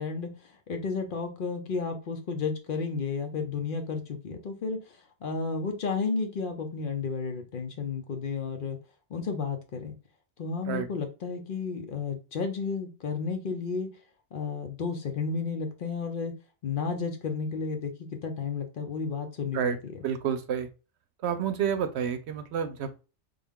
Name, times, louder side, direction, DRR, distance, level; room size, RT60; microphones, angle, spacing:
voice 1, 0.0-8.8 9.1-9.9 10.4-13.9 14.3-16.3 16.6-20.0, left 5 dB, 55° left, 0.8 m, -32 dB
voice 2, 20.0-20.7 21.2-23.1, right 8 dB, 75° right, 0.9 m, -29 dB
3.5 x 2.2 x 3.6 m
omnidirectional pair, 1.2 m